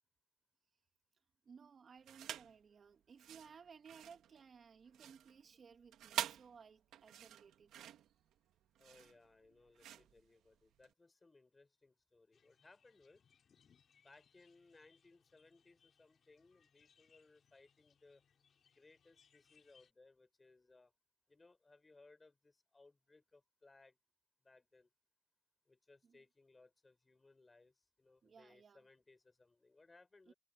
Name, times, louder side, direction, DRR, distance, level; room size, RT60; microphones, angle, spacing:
voice 1, 1.5-7.7 26.0-26.2 28.2-28.8 30.3-30.4, right 6 dB, 55° right, 1.8 m, -60 dB
sound 1, 2.0-2.6 3.1-10.9, right 11 dB, 85° right, 1.4 m, -47 dB
voice 2, 8.8-13.2 14.0-18.2 18.6-20.9 21.3-24.0 24.4-24.9 25.6-30.3, left 3 dB, 30° left, 6.6 m, -66 dB
sound 2, 12.3-19.9, left 7 dB, 60° left, 6.0 m, -73 dB
supercardioid pair, 60°, 0 cm